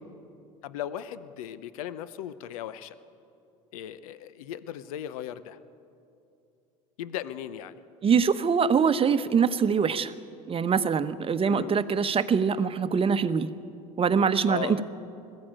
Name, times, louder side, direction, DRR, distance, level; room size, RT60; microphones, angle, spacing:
voice 1, 0.6-2.9 3.7-5.6 7.0-7.8 11.5-11.8 14.5-14.8, left 11 dB, 85° left, 15 dB, 0.7 m, -37 dB
voice 2, 8.0-10.1 10.5-13.5 14.0-14.8, right 6 dB, 30° right, 12 dB, 1.0 m, -23 dB
20.5 x 14.5 x 8.9 m, 2.6 s
hypercardioid pair, 80°, 18 cm